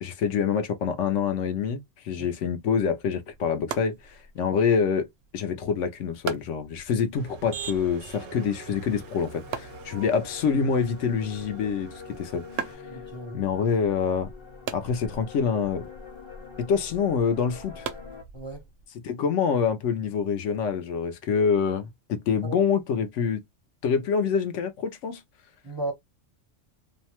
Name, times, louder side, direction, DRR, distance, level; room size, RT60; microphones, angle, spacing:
voice 1, 0.0-5.1 5.3-12.7 13.3-14.3 14.7-15.9 16.6-17.9 19.0-23.4 23.8-25.2, left 6 dB, 75° left, 1.0 m, -26 dB
sound 1, 3.0-18.8, right 6 dB, 65° right, 0.7 m, -42 dB
Motor vehicle (road), 7.2-12.7, right 7 dB, 90° right, 1.0 m, -44 dB
sound 2, 8.2-18.2, left 5 dB, 30° left, 0.6 m, -45 dB
voice 2, 12.9-13.4 18.3-18.6 22.4-22.6 25.6-25.9, right 2 dB, 30° right, 0.5 m, -34 dB
2.7 x 2.1 x 2.8 m
omnidirectional pair, 1.3 m